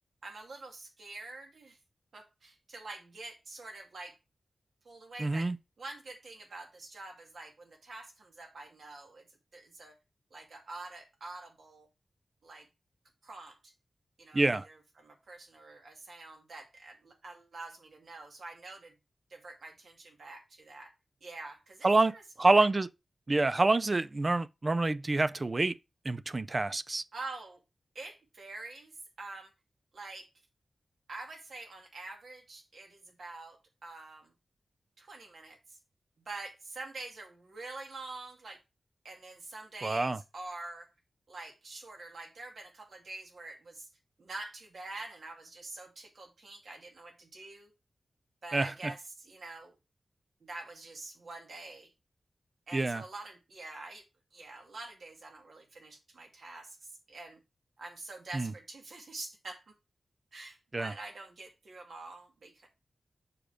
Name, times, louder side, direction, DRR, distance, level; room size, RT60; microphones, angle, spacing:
voice 1, 0.2-1.8 2.1-4.2 4.8-5.5 5.8-9.3 9.5-10.0 10.3-11.9 12.4-12.7 13.2-13.7 14.2-19.0 19.3-20.9 21.2-22.2 22.6-22.7 27.1-27.6 27.9-29.5 29.9-30.3 31.1-34.3 35.0-35.8 36.2-38.6 39.0-40.9 41.3-43.9 44.2-47.7 48.4-49.8 50.4-51.9 52.7-54.0 54.3-57.4 57.8-59.6 60.3-62.7, right 2 dB, 75° right, 2.3 m, -46 dB
voice 2, 5.2-5.6 14.3-14.7 21.8-22.1 22.4-22.9 23.3-25.7 26.0-27.0 39.8-40.2 48.5-48.7 52.7-53.0 58.3-58.5 60.7-60.9, right 2 dB, 30° right, 0.4 m, -27 dB
6.9 x 5.2 x 4.9 m
wide cardioid pair, 130°, 0 cm